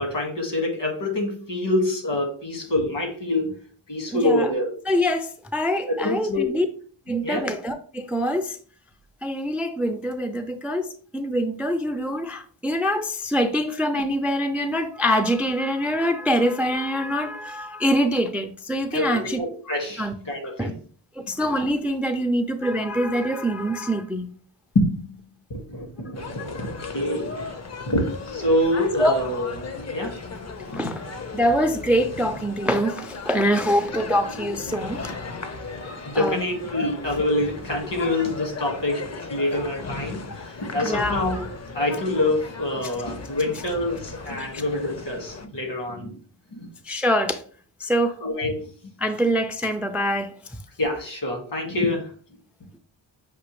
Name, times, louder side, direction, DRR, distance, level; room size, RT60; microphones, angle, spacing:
voice 1, 0.0-3.5 3.9-4.8 5.9-6.5 7.2-7.4 18.9-20.8 24.8-25.2 25.5-27.4 27.9-29.5 29.9-30.2 30.7-30.8 36.0-41.4 41.7-46.1 46.5-46.7 48.2-48.6 50.8-52.1, left 1 dB, 65° left, 2 dB, 1.7 m, -26 dB
voice 2, 4.1-4.5 4.9-6.7 7.1-8.6 9.2-19.4 20.0-20.1 20.6-20.7 21.2-24.3 26.8-26.9 29.0-29.2 30.7-31.0 31.3-35.2 36.1-36.4 40.8-41.2 44.4-44.6 46.8-47.4 47.8-48.1 49.0-50.3, equal, 5° right, 7 dB, 0.3 m, -24 dB
sound 1, 26.1-45.5, left 4 dB, 35° left, 0.6 m, -36 dB
6.0 x 2.7 x 3.1 m, 0.44 s
cardioid pair, 80°, 45 cm